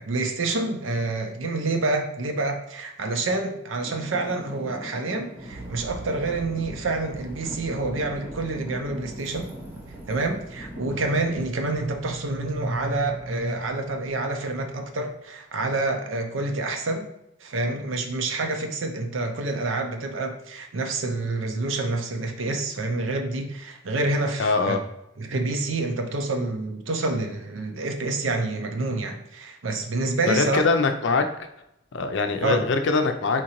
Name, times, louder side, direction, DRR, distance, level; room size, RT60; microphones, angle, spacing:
voice 1, 0.0-9.5 10.1-17.0 17.4-24.8 25.2-30.6 32.4-32.7, right 2 dB, 80° right, 5 dB, 0.6 m, -27 dB
Traffic noise roadway noise / Engine, 3.8-11.1, equal, 10° right, 0.8 m, -41 dB
sound 1, 5.3-15.0, right 3 dB, 50° right, 0.3 m, -45 dB
voice 2, 24.4-24.8 30.3-31.2 31.9-33.4, left 4 dB, 65° left, 6 dB, 0.5 m, -22 dB
4.4 x 3.8 x 3.0 m, 0.84 s
head